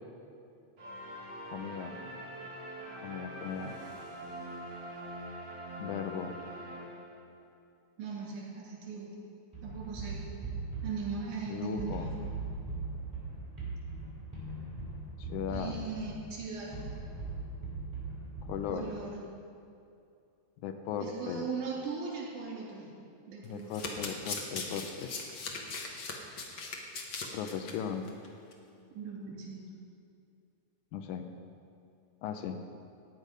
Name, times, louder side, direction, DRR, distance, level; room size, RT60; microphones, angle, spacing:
sound 1, 0.8-7.4, right 1 dB, 65° right, 5.1 m, -44 dB
voice 1, 1.5-2.0 3.0-3.8 5.8-6.3 11.5-12.1 15.2-15.8 18.4-18.8 20.6-21.5 23.4-25.1 27.3-28.1 30.9-31.2 32.2-32.6, left 7 dB, 90° left, 6 dB, 2.2 m, -37 dB
voice 2, 8.0-9.2 9.6-10.2 10.8-12.1 15.5-16.7 18.7-19.2 21.0-22.9 23.3-24.0 29.0-29.7, right 5 dB, 80° right, -4 dB, 4.0 m, -39 dB
sound 2, 9.5-19.1, right 3 dB, 15° right, 3.8 m, -40 dB
Domestic sounds home sounds, 23.4-27.7 28.1-28.3 28.5-28.6, left 4 dB, 50° left, 1.7 m, -39 dB
16.5 x 9.2 x 5.2 m, 2.5 s
omnidirectional pair, 3.4 m